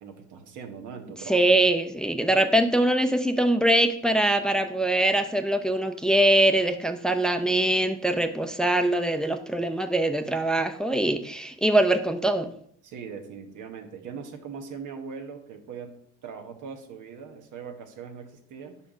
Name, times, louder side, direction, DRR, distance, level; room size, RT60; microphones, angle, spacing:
voice 1, 0.0-1.5 12.8-16.0 16.2-18.8, right 6 dB, 80° right, 5 dB, 1.2 m, -40 dB
voice 2, 1.3-12.5, right 1 dB, ahead, 6 dB, 0.6 m, -23 dB
5.7 x 4.3 x 5.0 m, 0.64 s
cardioid pair, 90°, 30 cm